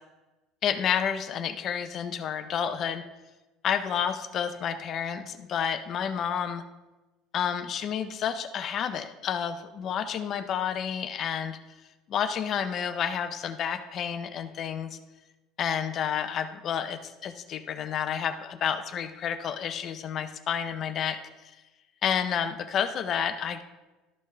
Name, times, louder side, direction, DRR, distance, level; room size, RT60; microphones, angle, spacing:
voice 1, 0.6-3.0 3.6-6.6 7.3-11.6 12.1-15.0 15.6-21.2 21.4-21.5 22.0-23.6, left 8 dB, 35° left, 9 dB, 0.6 m, -30 dB
13.0 x 5.3 x 3.3 m, 1.1 s
cardioid pair, 160°, 0 cm